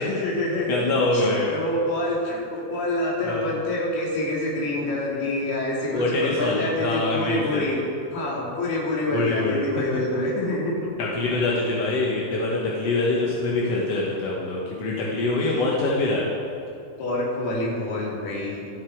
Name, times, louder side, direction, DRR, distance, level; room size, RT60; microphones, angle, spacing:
voice 1, 0.0-0.8 1.1-7.8 8.1-11.1 15.3-15.6 17.0-18.7, left 1 dB, 70° left, -3 dB, 4.9 m, -27 dB
voice 2, 0.7-1.6 3.2-3.5 5.9-7.7 9.1-9.6 11.0-16.3, left 2 dB, 55° left, -4 dB, 1.9 m, -24 dB
25.5 x 8.8 x 4.8 m, 2.6 s
omnidirectional pair, 4.7 m